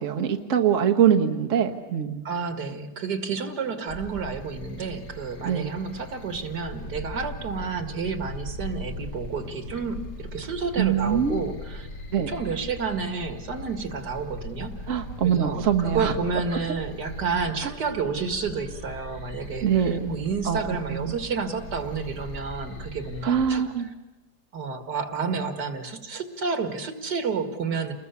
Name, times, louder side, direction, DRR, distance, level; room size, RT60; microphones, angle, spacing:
voice 1, 0.0-2.2 5.4-5.7 10.8-11.4 12.1-12.3 14.9-16.1 19.6-20.1 20.5-21.2 23.2-23.9, right 8 dB, 50° right, 3 dB, 1.4 m, -23 dB
voice 2, 2.2-11.9 12.3-23.9 24.5-27.9, right 5 dB, 70° right, 7 dB, 2.5 m, -30 dB
sound 1, 3.9-23.5, equal, 80° left, 3.3 m, -39 dB
29.5 x 21.0 x 7.0 m, 1.1 s
omnidirectional pair, 1.8 m